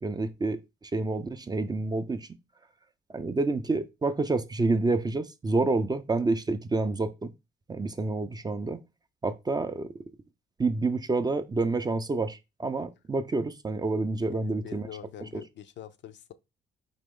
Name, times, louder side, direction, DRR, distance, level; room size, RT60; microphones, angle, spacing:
voice 1, 0.0-2.3 3.1-7.3 7.7-8.8 9.2-9.9 10.6-14.9 15.3-15.4, right 3 dB, 20° right, 0.4 m, -28 dB
voice 2, 14.3-16.3, left 10 dB, 65° left, 0.5 m, -44 dB
4.2 x 2.9 x 3.6 m
cardioid pair, 90°, 20 cm